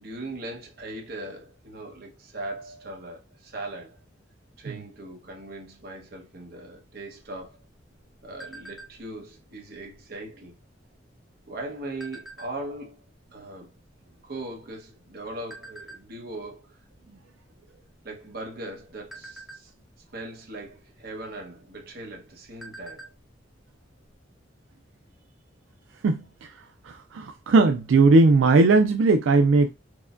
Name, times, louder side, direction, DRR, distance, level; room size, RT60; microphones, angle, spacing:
voice 1, 0.0-4.0 4.6-7.6 8.2-10.6 11.4-13.0 13.3-13.7 14.2-16.8 17.1-17.2 18.0-19.7 20.1-23.1, right 2 dB, 55° right, 1.1 m, -39 dB
sound 1, 7.2-9.2 9.7-10.0 10.2-10.6 11.3-12.8 13.4-13.5 13.8-15.0 15.5-16.0 16.5-16.8 17.1-17.3 17.7-18.3 18.7-20.1 21.2-21.3 21.7-21.8 22.2-23.3 23.5-23.6 24.0-24.1, right 2 dB, ahead, 0.5 m, -45 dB
voice 2, 26.0-29.7, right 3 dB, 85° right, 0.4 m, -19 dB
4.6 x 2.2 x 2.5 m
head